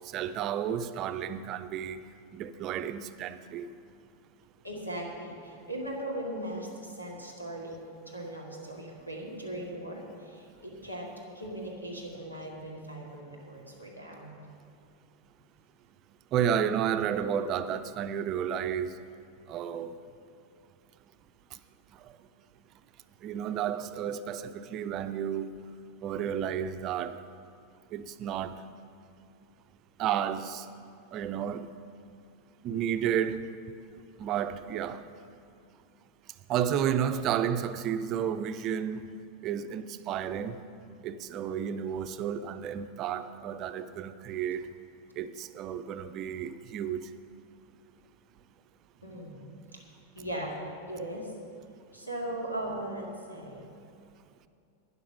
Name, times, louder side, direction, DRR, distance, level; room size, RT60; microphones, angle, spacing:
voice 1, 0.1-2.0 2.3-3.7 16.3-18.9 19.5-19.9 23.2-25.5 26.0-27.2 27.9-28.6 30.0-30.6 31.1-31.7 32.6-33.4 34.2-35.0 36.5-39.0 39.4-40.6 41.0-44.6 45.2-47.0, right 9 dB, 35° right, 0.5 m, -31 dB
voice 2, 4.6-11.1 11.3-14.5 49.0-49.8 50.1-50.6 50.9-51.3 51.9-53.7, right 1 dB, 90° left, 2.2 m, -39 dB
12.0 x 9.5 x 6.0 m
figure-of-eight pair, 90°, 0 cm